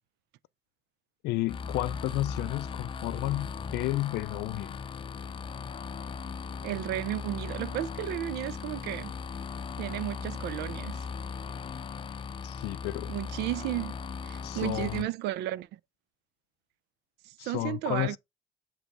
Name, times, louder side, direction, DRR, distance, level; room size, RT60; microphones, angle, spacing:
voice 1, 1.2-4.8 12.4-13.1 14.4-15.1 17.4-18.2, left 18 dB, 80° left, 0.4 m, -32 dB
sound 1, 1.5-15.0, left 5 dB, 30° left, 0.5 m, -38 dB
voice 2, 6.6-9.1 9.8-11.0 13.1-13.9 14.2-15.7 17.2-18.2, right 15 dB, 85° right, 0.5 m, -33 dB
7.4 x 3.2 x 4.8 m
cardioid pair, 110°, 17 cm